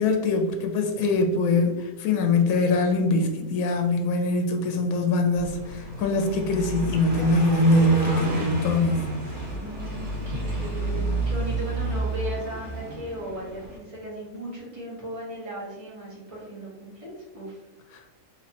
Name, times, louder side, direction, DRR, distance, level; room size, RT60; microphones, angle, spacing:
voice 1, 0.0-9.1, left 2 dB, 80° left, 3 dB, 1.0 m, -23 dB
Car passing by, 5.3-13.8, right 2 dB, 80° right, 1.5 m, -31 dB
voice 2, 8.0-8.6 9.5-17.6, equal, 25° right, -7 dB, 1.5 m, -37 dB
3.4 x 3.0 x 2.9 m, 1.0 s
omnidirectional pair, 1.4 m